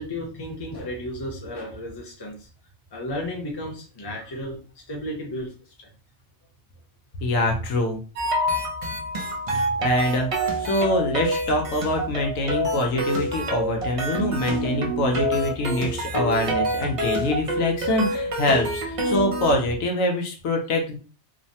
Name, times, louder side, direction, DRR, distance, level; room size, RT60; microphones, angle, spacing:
voice 1, 0.0-2.5 2.9-4.6 4.9-5.5, left 1 dB, 25° left, -2 dB, 0.6 m, -33 dB
voice 2, 7.2-8.0 9.5-10.3 10.6-21.0, left 1 dB, 75° left, 3 dB, 1.0 m, -24 dB
sound 1, 8.2-19.5, right 1 dB, 55° right, 0.3 m, -27 dB
3.1 x 2.1 x 2.7 m, 0.37 s
omnidirectional pair, 1.4 m